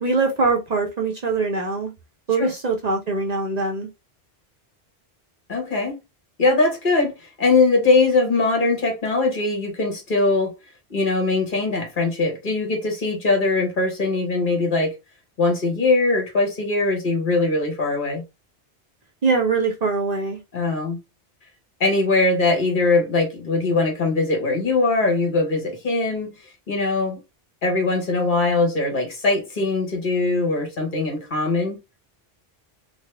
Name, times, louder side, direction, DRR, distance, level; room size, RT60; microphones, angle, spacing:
voice 1, 0.0-1.9 2.3-3.9 19.2-20.4, right 4 dB, 45° right, 0.7 m, -22 dB
voice 2, 5.5-5.9 6.4-10.5 10.9-15.0 15.4-18.2 20.5-21.0 21.8-26.4 26.7-27.2 27.6-31.8, left 3 dB, 55° left, 1.4 m, -21 dB
3.9 x 2.0 x 3.3 m
omnidirectional pair, 1.0 m